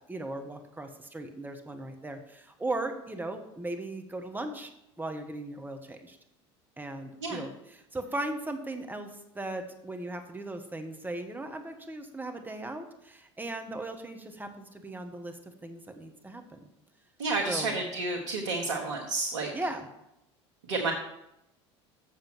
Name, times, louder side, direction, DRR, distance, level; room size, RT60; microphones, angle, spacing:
voice 1, 0.1-4.7 5.0-6.2 6.8-9.1 9.3-16.7 17.5-17.8 19.5-19.9, right 2 dB, 10° right, 5 dB, 1.4 m, -37 dB
voice 2, 17.2-19.5 20.6-20.9, right 3 dB, 75° right, 0 dB, 1.4 m, -30 dB
7.5 x 7.2 x 6.2 m, 0.85 s
hypercardioid pair, 75°, 15 cm